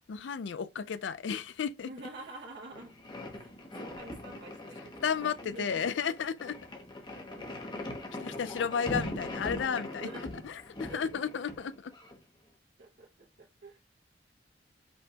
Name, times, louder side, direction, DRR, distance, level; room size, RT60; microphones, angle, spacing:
voice 1, 0.1-1.9 5.0-6.6 8.2-10.1 10.4-11.9, left 6 dB, 85° left, 0.4 m, -33 dB
voice 2, 1.8-2.9 3.3-5.7 7.1-7.9 10.0-10.2 10.9-11.0 12.8-13.8, right 2 dB, 65° right, 1.3 m, -48 dB
sound 1, 2.7-12.2, left 1 dB, 25° left, 1.0 m, -41 dB
5.2 x 3.4 x 2.9 m
head